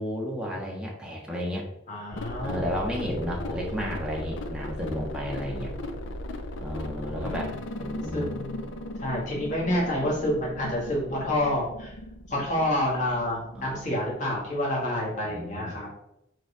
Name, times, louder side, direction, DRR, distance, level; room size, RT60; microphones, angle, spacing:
voice 1, 0.0-1.6 2.4-5.7 6.6-8.3 13.5-13.8 15.2-15.8, equal, 5° right, -3 dB, 1.5 m, -32 dB
voice 2, 1.9-2.6 3.4-4.0 5.4-5.7 6.9-7.4 8.1-8.6 9.0-12.0 12.3-16.0, left 1 dB, 40° left, -5 dB, 1.9 m, -29 dB
sound 1, 2.1-15.4, left 1 dB, 85° left, 0.6 m, -38 dB
5.0 x 4.5 x 5.0 m, 0.83 s
head